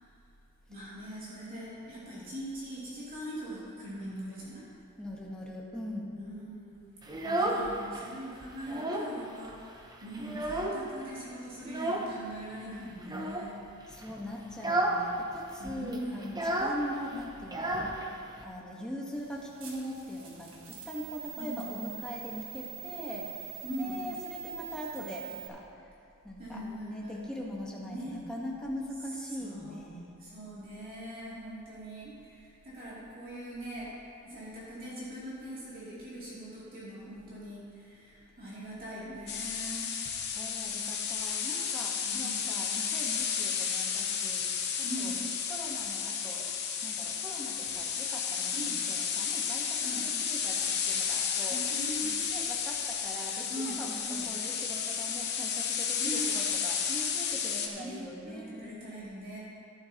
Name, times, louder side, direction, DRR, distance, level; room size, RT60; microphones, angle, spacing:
voice 1, 0.7-4.6 6.1-6.8 7.2-13.6 15.6-16.2 21.4-21.7 23.6-24.0 26.4-27.3 27.9-28.2 29.3-29.8 30.2-33.9 34.2-39.9 42.0-42.5 44.8-45.2 48.5-48.8 49.8-50.0 51.5-52.3 53.5-53.8 54.0-54.3 56.0-56.2 57.8-59.4, right 1 dB, 40° right, -9 dB, 2.6 m, -41 dB
voice 2, 5.0-6.1 13.9-25.9 26.2-30.2 40.0-45.1 45.5-46.5 46.8-48.6 48.9-51.6 52.0-58.7, equal, 5° left, -4 dB, 1.1 m, -42 dB
Child speech kid speaking, 7.0-8.1 8.4-9.2 9.5-9.6 9.9-11.0 11.6-12.1 13.0-13.5 13.9-14.1 14.5-15.1 15.3-15.4 15.6-18.4, right 1 dB, 20° right, 0.7 m, -32 dB
sound 1, 19.1-25.5, right 11 dB, 60° right, 1.5 m, -45 dB
sound 2, 39.3-57.7, left 7 dB, 50° left, 0.9 m, -32 dB
13.5 x 11.0 x 2.9 m, 2.5 s
head